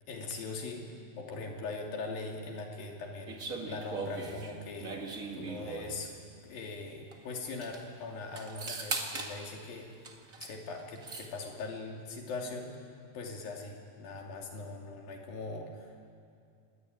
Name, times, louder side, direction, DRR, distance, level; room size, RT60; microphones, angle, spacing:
voice 1, 0.1-6.1 6.4-9.9 10.4-12.8 13.1-16.1, left 3 dB, 60° left, 1 dB, 4.3 m, -41 dB
sound 1, 3.3-6.0 7.1-7.2 7.4-7.8 8.4-9.3 10.0-10.5 10.8-11.3, right 3 dB, 35° right, 1.2 m, -39 dB
24.0 x 21.0 x 9.4 m, 2.4 s
omnidirectional pair, 4.8 m